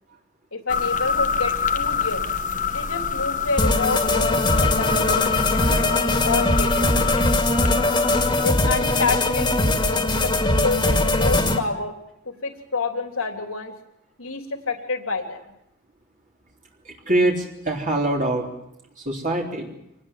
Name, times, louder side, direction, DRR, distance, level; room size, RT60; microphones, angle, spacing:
voice 1, 0.5-2.3 2.7-7.3 8.4-11.9 12.2-13.7 14.2-15.4, left 4 dB, 90° left, 5 dB, 3.2 m, -28 dB
sound 1, 0.7-8.5, left 6 dB, 40° left, 1.2 m, -26 dB
sound 2, 3.6-11.6, left 2 dB, 20° left, 2.3 m, -21 dB
voice 2, 16.8-18.5 19.0-19.7, right 1 dB, 40° right, -1 dB, 3.7 m, -24 dB
26.5 x 19.5 x 7.4 m, 0.81 s
head